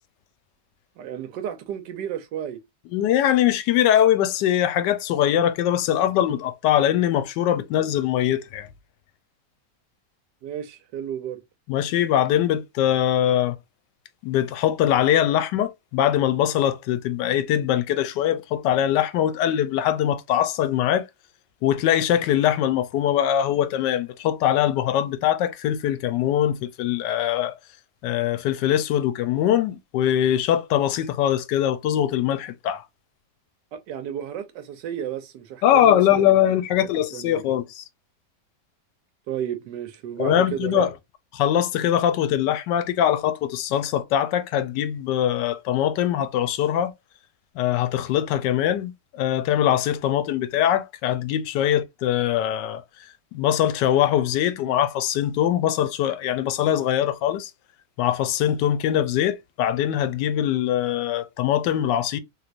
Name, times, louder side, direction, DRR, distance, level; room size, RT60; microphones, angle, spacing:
voice 1, 1.0-2.6 10.4-11.4 33.7-37.4 39.3-40.9, right 9 dB, 85° right, 1.3 m, -33 dB
voice 2, 2.9-8.7 11.7-13.6 14.2-21.0 21.6-27.5 28.0-32.8 35.6-37.8 40.2-40.9 41.3-46.9 47.6-52.8 53.3-57.5 58.0-62.2, left 11 dB, 85° left, 1.2 m, -22 dB
3.1 x 3.1 x 2.5 m
omnidirectional pair, 1.8 m